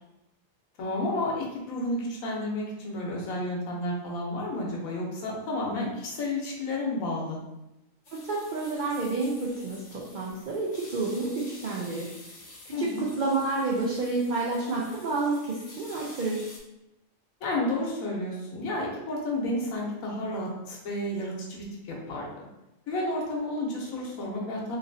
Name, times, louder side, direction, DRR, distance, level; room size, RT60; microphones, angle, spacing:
voice 1, 0.8-7.4 12.7-13.1 17.4-22.3 22.9-24.8, left 1 dB, 85° left, -2 dB, 1.2 m, -31 dB
sound 1, 8.0-16.6, left 2 dB, 60° left, 1.0 m, -49 dB
voice 2, 8.1-12.1 12.8-16.5, right 3 dB, 85° right, -4 dB, 0.4 m, -29 dB
2.9 x 2.6 x 2.5 m, 0.93 s
omnidirectional pair, 1.4 m